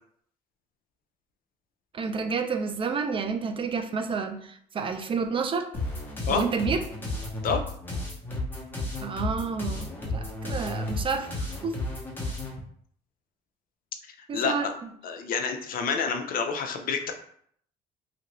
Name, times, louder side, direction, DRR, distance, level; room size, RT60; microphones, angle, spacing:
voice 1, 1.9-5.7 6.3-6.8 9.0-11.7 14.3-14.9, right 5 dB, 30° right, 7 dB, 0.3 m, -30 dB
sound 1, 5.7-12.5, left 2 dB, 10° left, 0.9 m, -33 dB
voice 2, 14.3-14.7 15.0-17.1, left 5 dB, 55° left, 5 dB, 0.5 m, -28 dB
3.0 x 2.5 x 2.9 m, 0.64 s
cardioid pair, 110°, 17 cm